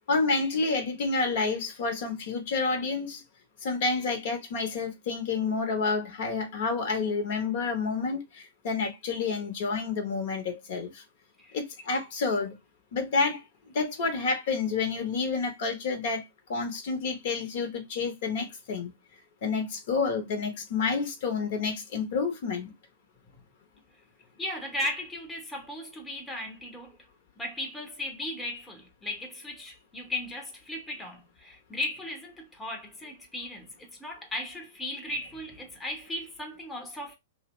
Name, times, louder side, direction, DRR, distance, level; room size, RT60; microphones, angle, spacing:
voice 1, 0.1-3.2 3.6-11.0 11.5-12.5 12.9-13.4 13.7-18.9 19.4-22.7, left 4 dB, 55° left, 0.8 m, -29 dB
voice 2, 24.4-27.0 27.4-37.1, left 1 dB, 10° left, 0.9 m, -36 dB
2.7 x 2.0 x 3.0 m
figure-of-eight pair, 105°, 0 cm